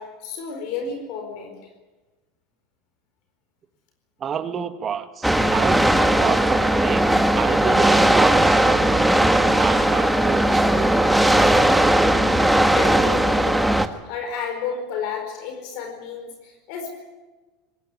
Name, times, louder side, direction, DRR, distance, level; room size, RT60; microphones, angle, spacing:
voice 1, 0.0-1.6 12.3-13.7 14.0-16.9, left 5 dB, 65° left, 4 dB, 4.4 m, -32 dB
voice 2, 4.2-11.6, right 7 dB, 35° right, 9 dB, 1.9 m, -29 dB
sound 1, 5.2-13.9, right 1 dB, 5° right, 1.5 m, -18 dB
20.0 x 17.5 x 9.8 m, 1.2 s
hypercardioid pair, 90°, 0 cm